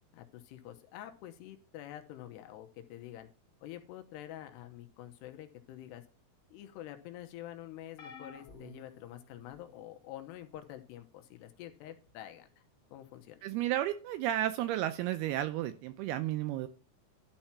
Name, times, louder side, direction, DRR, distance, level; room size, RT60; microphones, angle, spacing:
voice 1, 0.1-3.3 3.6-6.0 6.5-12.5 12.9-13.4, left 12 dB, 80° left, 7 dB, 2.9 m, -47 dB
sound 1, 8.0-9.8 10.5-10.8 12.1-12.2, left 3 dB, 35° left, 3.3 m, -52 dB
voice 2, 13.4-16.7, right 13 dB, 80° right, 10 dB, 2.3 m, -32 dB
12.0 x 4.4 x 5.9 m, 0.38 s
omnidirectional pair, 5.0 m